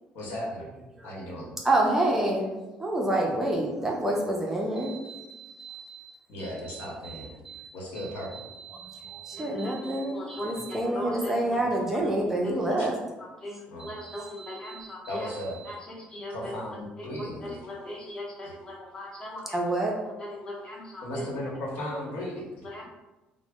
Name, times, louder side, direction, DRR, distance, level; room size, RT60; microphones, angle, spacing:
voice 1, 0.1-0.7 1.0-1.6 6.3-7.4 7.7-8.4 12.8-12.9 13.7-13.9 15.1-15.6 16.3-17.6 18.4-18.5 21.0-22.7, left 1 dB, 80° left, -3 dB, 1.0 m, -36 dB
voice 2, 1.6-2.5 2.8-6.1 6.7-7.7 8.0-12.9 13.8-14.9 19.5-19.9, right 1 dB, 10° right, -1 dB, 0.4 m, -29 dB
voice 3, 10.1-10.5 10.9-11.3 12.4-12.5 13.4-15.0 15.7-16.3 17.7-19.6 20.2-21.2 22.7-22.9, left 1 dB, 25° left, -3 dB, 0.7 m, -39 dB
3.8 x 2.0 x 3.5 m, 1.1 s
cardioid pair, 160°, 3 cm